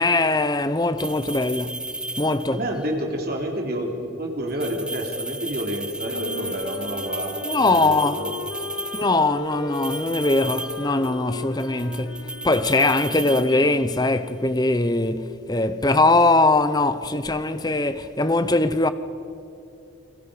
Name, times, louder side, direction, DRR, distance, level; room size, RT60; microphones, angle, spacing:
voice 1, 0.0-1.8 2.2-2.6 7.4-8.2 8.9-18.9, left 2 dB, 20° left, 0.8 m, -21 dB
sound 1, 1.0-2.7 4.5-9.2 9.7-11.3 11.6-14.1, right 2 dB, 5° right, 0.4 m, -34 dB
voice 2, 2.5-8.4, equal, 45° right, 3.1 m, -29 dB
Wind instrument woodwind instrument, 6.0-14.3, left 4 dB, 90° left, 1.8 m, -37 dB
29.5 x 22.0 x 5.0 m
head